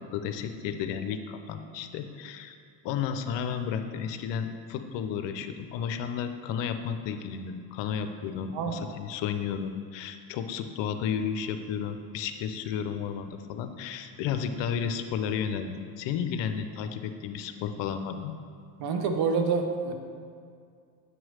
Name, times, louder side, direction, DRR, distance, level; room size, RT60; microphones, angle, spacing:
voice 1, 0.0-2.6 2.8-18.3, left 7 dB, 60° left, 8 dB, 0.7 m, -32 dB
voice 2, 8.5-8.9 18.8-19.9, right 5 dB, 50° right, 4 dB, 0.9 m, -27 dB
8.0 x 3.1 x 6.3 m, 2.2 s
supercardioid pair, 80°, 49 cm